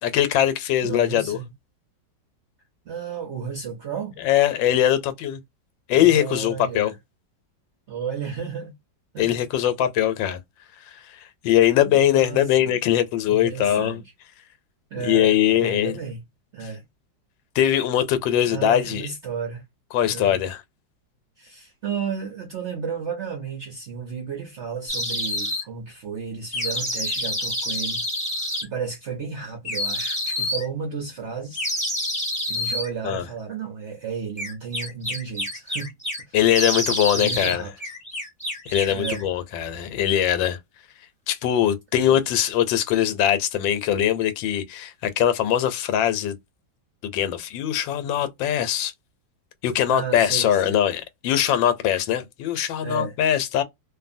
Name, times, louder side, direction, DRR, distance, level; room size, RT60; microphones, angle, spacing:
voice 1, 0.0-1.4 4.2-5.4 5.9-6.9 9.2-10.4 10.9-14.0 15.0-15.9 17.5-19.0 19.9-20.6 33.0-33.2 36.3-37.6 38.7-40.6 41.3-46.4 47.0-48.9 49.6-53.6, left 11 dB, 85° left, 1.3 m, -21 dB
voice 2, 0.8-1.5 2.8-4.2 5.9-7.0 7.9-8.7 9.1-9.4 11.8-12.7 13.3-14.1 14.9-16.2 16.5-16.8 18.4-19.6 20.0-20.4 21.4-28.1 28.6-31.7 32.5-35.9 36.3-36.4 37.1-37.7 38.9-39.2 42.0-42.2 49.9-50.8 52.8-53.2, right 6 dB, 60° right, 0.7 m, -33 dB
sound 1, 24.9-25.6 26.5-28.6 29.6-30.7 31.5-32.9 34.4-36.2 36.5-37.6 37.8-39.3, left 1 dB, 5° left, 1.0 m, -27 dB
2.6 x 2.6 x 2.5 m
omnidirectional pair, 2.0 m